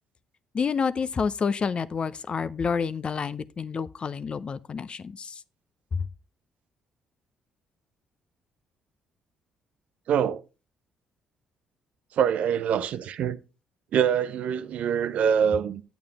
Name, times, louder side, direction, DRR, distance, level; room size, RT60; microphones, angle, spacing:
voice 1, 0.5-5.4 5.9-6.1, left 5 dB, 40° left, 0.6 m, -29 dB
voice 2, 10.1-10.4 12.2-13.4 13.9-15.8, right 8 dB, 60° right, 0.7 m, -24 dB
9.2 x 8.6 x 3.5 m
hypercardioid pair, 45°, 3 cm